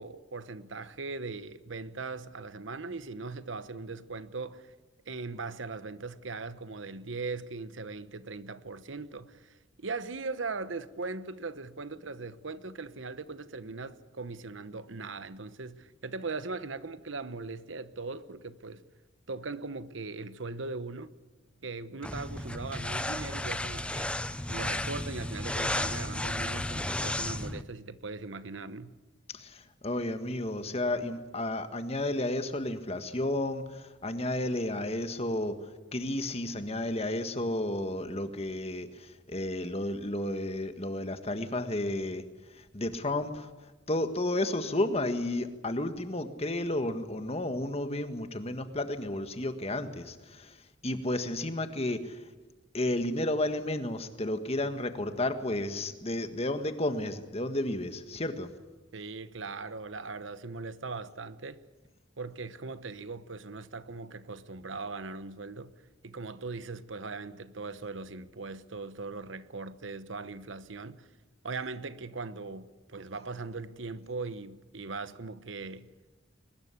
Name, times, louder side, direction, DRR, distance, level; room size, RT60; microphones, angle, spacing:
voice 1, 0.0-4.7 5.1-18.8 19.3-21.1 21.6-24.1 24.5-28.9 58.9-61.6 62.2-65.7 66.0-71.1 71.4-75.9, right 3 dB, 75° right, 1.1 m, -39 dB
sound 1, 22.0-27.6, left 1 dB, 5° left, 0.8 m, -33 dB
voice 2, 29.3-35.5 35.9-42.2 42.7-43.5 43.9-50.5 50.8-52.2 52.7-58.5, left 1 dB, 30° left, 1.7 m, -32 dB
22.5 x 20.5 x 8.4 m
head